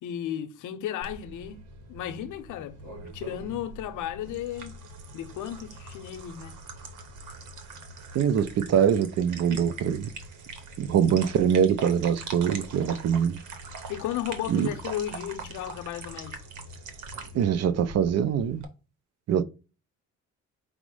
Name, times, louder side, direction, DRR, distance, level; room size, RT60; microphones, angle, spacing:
voice 1, 0.0-1.6 1.9-4.7 5.1-6.6 13.9-16.4, left 11 dB, 80° left, 0.6 m, -34 dB
sound 1, 1.0-18.7, right 3 dB, 85° right, 0.9 m, -42 dB
voice 2, 8.1-10.1 10.8-13.4 14.5-14.7 17.3-18.6 19.3-19.4, right 8 dB, 60° right, 0.5 m, -23 dB
4.9 x 2.1 x 4.6 m
cardioid pair, 90°, 30 cm